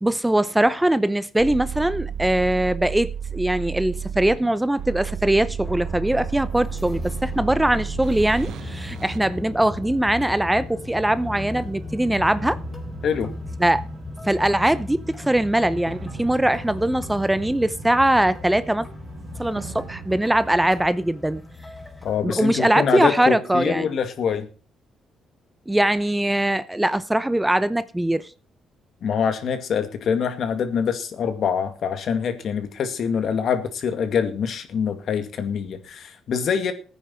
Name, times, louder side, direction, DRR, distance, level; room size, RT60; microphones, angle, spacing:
voice 1, 0.0-12.6 13.6-13.8 14.2-18.9 19.4-21.4 22.2-23.9 25.7-28.3, right 1 dB, 10° right, 0.7 m, -21 dB
sound 1, 1.4-20.2, right 8 dB, 75° right, 1.1 m, -35 dB
sound 2, 5.6-22.2, left 3 dB, 15° left, 3.6 m, -37 dB
voice 2, 22.0-24.5 29.0-36.7, left 7 dB, 65° left, 2.1 m, -25 dB
16.0 x 9.6 x 4.5 m
cardioid pair, 90°, 0 cm